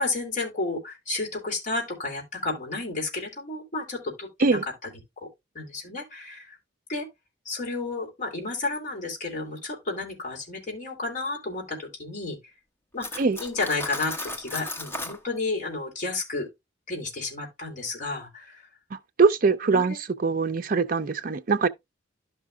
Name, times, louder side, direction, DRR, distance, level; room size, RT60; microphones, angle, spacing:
voice 1, 0.0-4.9 5.2-5.3 5.5-6.6 6.9-7.1 7.4-12.4 12.9-16.5 16.9-18.7 19.6-20.0, left 3 dB, 45° left, 2.9 m, -32 dB
Cutlery silverware, 13.0-15.2, left 2 dB, 15° left, 1.1 m, -35 dB
voice 2, 18.9-20.0 20.2-21.7, right 4 dB, 50° right, 0.5 m, -22 dB
12.5 x 5.5 x 2.2 m
head